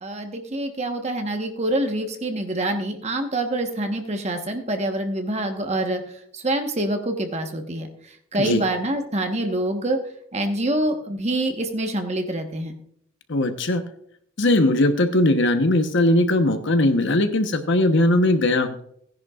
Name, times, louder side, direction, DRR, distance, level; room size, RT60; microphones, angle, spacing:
voice 1, 0.0-6.0 6.3-10.0 10.3-12.7, right 1 dB, 30° right, 5 dB, 1.2 m, -26 dB
voice 2, 13.3-13.8 14.4-18.8, left 1 dB, 60° left, 8 dB, 1.0 m, -19 dB
16.5 x 10.5 x 2.4 m, 0.68 s
head